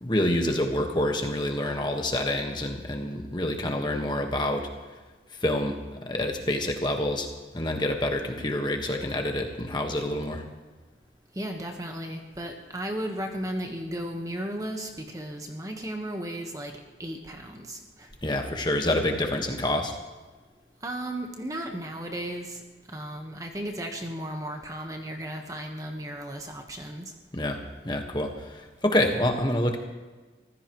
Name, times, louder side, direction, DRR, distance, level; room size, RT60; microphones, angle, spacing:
voice 1, 0.0-4.7 5.4-7.3 7.5-10.4 18.2-19.9 27.3-29.8, left 1 dB, 25° left, 3 dB, 1.5 m, -27 dB
voice 2, 11.3-16.7 17.0-18.1 20.8-22.6 22.9-27.0, right 1 dB, 20° right, 3 dB, 1.3 m, -35 dB
24.5 x 15.5 x 3.2 m, 1.3 s
head